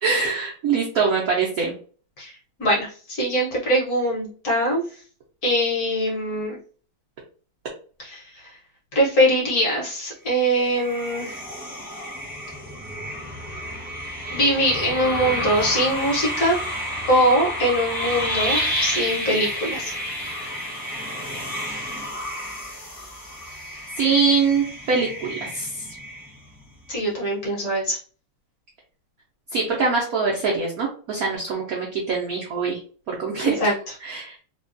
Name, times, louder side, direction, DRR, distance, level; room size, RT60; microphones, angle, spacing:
voice 1, 0.0-1.7 24.0-25.8 29.5-32.8 33.1-33.7 34.0-34.3, right 5 dB, 75° right, -2 dB, 0.8 m, -23 dB
voice 2, 2.6-4.8 5.4-6.6 8.0-8.2 8.9-11.4 14.3-16.6 17.1-19.9 26.9-28.0 33.4-33.7, equal, 55° left, -4 dB, 1.2 m, -22 dB
sound 1, 10.3-26.6, equal, 10° right, 0.5 m, -30 dB
3.3 x 2.2 x 2.5 m, 0.41 s
omnidirectional pair, 2.2 m